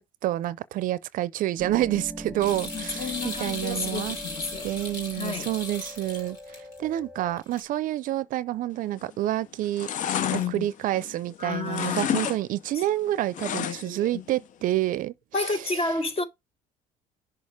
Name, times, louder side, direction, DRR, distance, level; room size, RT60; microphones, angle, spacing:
voice 1, 0.0-4.2 4.6-9.9 10.3-15.7, right 14 dB, 60° right, 0.5 m, -28 dB
sound 1, 1.6-7.4, equal, 10° left, 2.2 m, -41 dB
sound 2, 2.4-6.8 7.4-7.6, left 3 dB, 85° left, 2.8 m, -37 dB
voice 2, 2.7-4.7 5.2-5.5 10.1-10.7 11.4-12.2 12.7-12.8 13.5-14.2 15.3-16.2, left 4 dB, 40° left, 1.6 m, -31 dB
sound 3, 8.9-9.3 9.6-11.4 11.7-12.4 12.6-14.1 14.4-14.5, left 9 dB, 55° left, 0.6 m, -30 dB
6.4 x 3.8 x 4.8 m
supercardioid pair, 85°, 15 cm